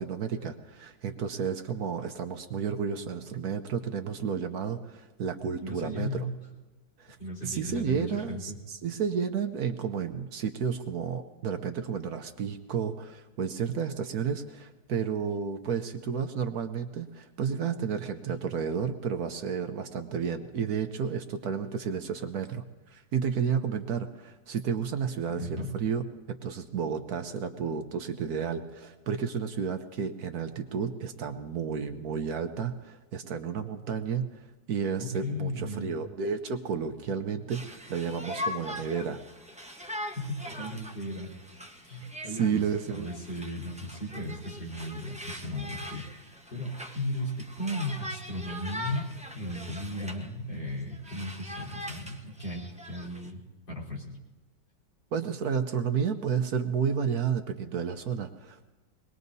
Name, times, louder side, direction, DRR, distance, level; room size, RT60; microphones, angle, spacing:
voice 1, 0.0-6.2 7.0-7.2 7.4-22.6 22.9-26.0 26.3-34.2 34.7-37.6 37.9-39.2 42.4-43.1 55.1-58.7, right 6 dB, 60° right, 7 dB, 1.2 m, -31 dB
voice 2, 5.6-6.3 7.2-8.6 25.4-25.7 35.0-35.9 40.2-41.3 41.8-42.6 42.9-49.0 49.3-53.4 53.7-54.2, left 1 dB, 80° left, -5 dB, 4.7 m, -36 dB
Conversation, 37.5-50.3 50.6-53.3, left 1 dB, 5° right, 0.6 m, -41 dB
23.5 x 20.0 x 2.7 m, 1.2 s
omnidirectional pair, 2.0 m